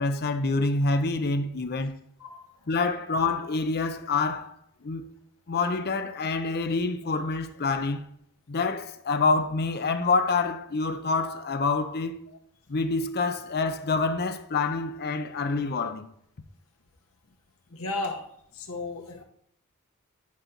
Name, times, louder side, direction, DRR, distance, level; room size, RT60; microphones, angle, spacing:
voice 1, 0.0-2.0 2.7-4.6 4.8-5.1 5.5-8.0 8.5-12.2 12.7-16.1, left 3 dB, 45° left, 0.6 m, -27 dB
voice 2, 17.7-18.2 18.5-19.2, left 2 dB, 65° left, 1.3 m, -33 dB
10.5 x 5.1 x 2.9 m
head